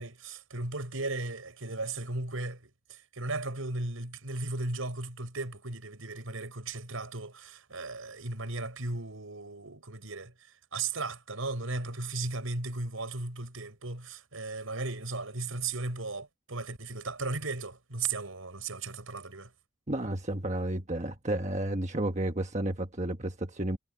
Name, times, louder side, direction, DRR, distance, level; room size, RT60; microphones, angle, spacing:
voice 1, 0.0-10.3 10.7-19.5, right 3 dB, 80° right, 4.9 m, -36 dB
voice 2, 19.9-23.8, right 1 dB, 35° right, 1.3 m, -32 dB
head